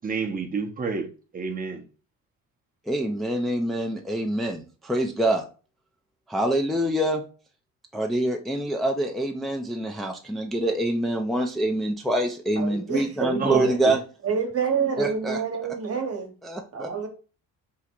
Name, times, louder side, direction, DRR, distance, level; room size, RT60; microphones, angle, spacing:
voice 1, 0.0-1.1 1.3-1.8 13.4-13.9, right 4 dB, 25° right, 0.8 m, -29 dB
voice 2, 2.9-5.4 6.3-7.2 7.9-14.0 15.0-15.4 16.4-16.9, right 1 dB, ahead, 0.5 m, -25 dB
voice 3, 12.6-13.8 14.2-16.3 16.7-17.1, right 6 dB, 45° right, 1.2 m, -28 dB
3.8 x 2.1 x 4.4 m
cardioid pair, 75°, 34 cm